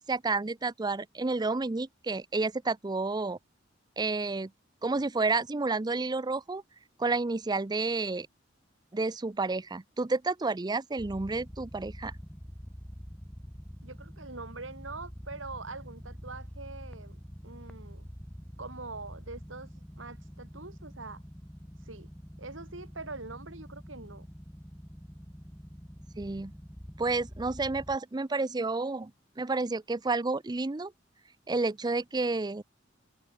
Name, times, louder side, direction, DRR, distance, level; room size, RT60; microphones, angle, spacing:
voice 1, 0.0-3.4 4.0-4.5 4.8-6.6 7.0-8.3 8.9-12.1 26.2-26.5 27.0-29.1 29.4-30.9 31.5-32.6, right 3 dB, 20° right, 0.5 m, -30 dB
sound 1, 11.0-28.0, equal, 5° left, 2.2 m, -46 dB
voice 2, 13.8-17.2 17.4-18.1 18.6-21.2 21.8-22.1 22.4-24.3, right 3 dB, 80° right, 3.7 m, -44 dB
head